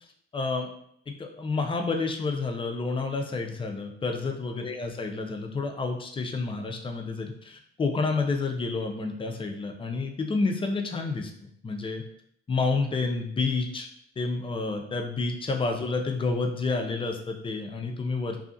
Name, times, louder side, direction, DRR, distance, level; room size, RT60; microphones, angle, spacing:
voice 1, 0.3-0.7 1.1-12.0 12.5-13.9 14.2-18.4, left 3 dB, 25° left, 4 dB, 0.4 m, -29 dB
2.7 x 2.3 x 2.6 m, 0.67 s
cardioid pair, 90°, 20 cm